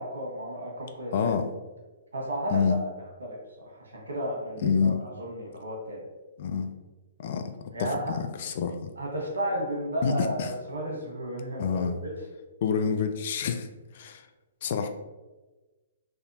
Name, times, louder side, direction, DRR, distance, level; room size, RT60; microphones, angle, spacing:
voice 1, 0.0-1.3 2.1-2.8 3.2-3.4 3.8-6.0 7.7-8.1 9.0-12.1, right 1 dB, 85° right, -1 dB, 1.1 m, -33 dB
voice 2, 1.1-1.5 2.5-2.8 4.6-5.0 6.4-6.7 7.2-7.4 7.8-8.9 10.0-10.5 11.6-12.0 12.6-13.7 13.9-14.2 14.6-14.9, left 6 dB, 55° left, 7 dB, 0.3 m, -27 dB
3.5 x 2.7 x 2.6 m, 1.2 s
hypercardioid pair, 130°, 0 cm